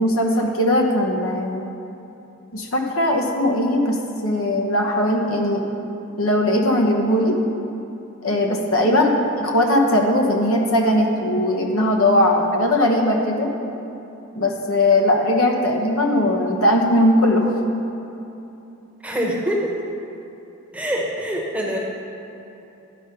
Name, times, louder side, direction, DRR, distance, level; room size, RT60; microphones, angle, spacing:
voice 1, 0.0-1.7 2.5-5.6 6.2-7.4 8.2-9.1 9.4-13.5 14.3-17.5, left 1 dB, 80° left, 1 dB, 1.1 m, -19 dB
voice 2, 8.8-9.3 19.0-19.8 20.7-21.8, equal, 5° right, -2 dB, 1.0 m, -25 dB
11.5 x 5.1 x 5.6 m, 2.9 s
head